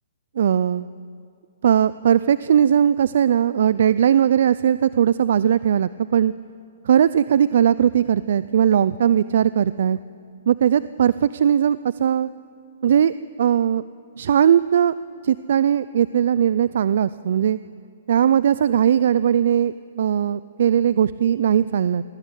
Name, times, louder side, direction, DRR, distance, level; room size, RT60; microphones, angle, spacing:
voice 1, 0.4-0.9 1.6-6.3 6.8-10.0 10.5-12.3 12.8-13.8 14.2-14.9 15.2-17.6 18.1-22.0, right 9 dB, 60° right, 17 dB, 0.4 m, -19 dB
19.5 x 17.0 x 8.4 m, 2.3 s
hypercardioid pair, 155°, 0 cm